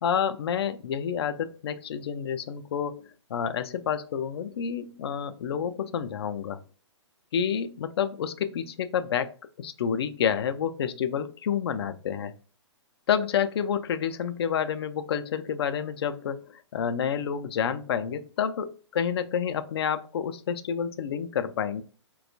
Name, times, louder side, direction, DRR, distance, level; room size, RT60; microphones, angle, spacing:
voice 1, 0.0-6.6 7.3-12.3 13.1-21.8, left 8 dB, 60° left, 10 dB, 0.4 m, -29 dB
4.1 x 2.2 x 2.6 m, 0.39 s
figure-of-eight pair, 125°, 15 cm